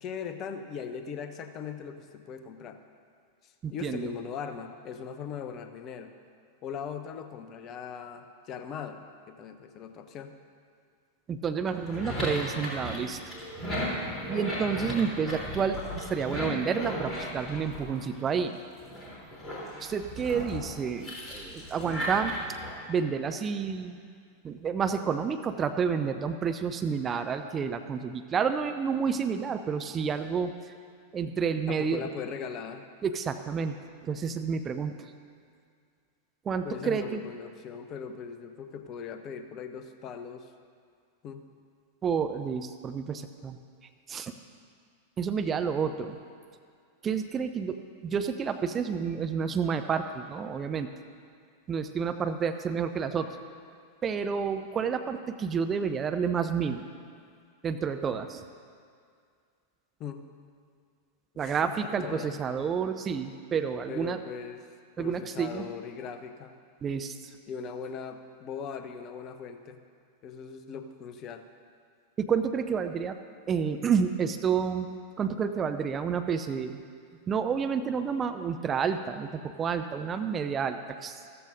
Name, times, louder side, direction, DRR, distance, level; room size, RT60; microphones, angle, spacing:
voice 1, 0.0-2.8 3.4-6.1 6.6-10.3 31.7-32.9 36.6-40.5 41.2-41.4 60.0-60.2 61.4-62.4 63.9-64.6 65.0-66.5 67.5-69.8 70.2-71.4, left 6 dB, 35° left, 8 dB, 0.8 m, -39 dB
voice 2, 3.6-4.1 11.3-13.3 14.2-18.6 19.8-22.3 22.9-24.1 24.4-30.5 31.1-32.0 33.0-33.8 34.0-35.1 36.5-37.2 42.0-43.6 44.1-44.3 45.2-46.2 47.0-50.9 51.7-53.3 54.0-56.9 57.6-58.4 61.4-64.2 65.0-65.7 66.8-67.3 72.2-73.2 73.5-74.9 75.2-76.8 77.3-80.8 81.0-81.2, right 6 dB, 25° right, 8 dB, 0.5 m, -30 dB
sound 1, 11.7-18.4 18.8-22.7, equal, 20° left, 3.5 m, -36 dB
14.5 x 13.5 x 2.6 m, 2.2 s
figure-of-eight pair, 90°, 0 cm